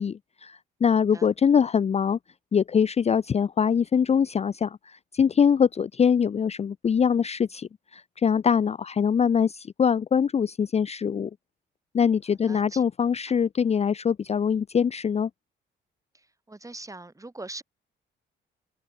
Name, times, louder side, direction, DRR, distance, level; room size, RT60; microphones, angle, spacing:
voice 1, 0.0-2.2 2.5-11.3 11.9-15.3, left 7 dB, 35° left, 0.5 m, -23 dB
voice 2, 12.4-12.8 16.5-17.6, right 2 dB, 15° right, 6.1 m, -41 dB
cardioid pair, 90°, 20 cm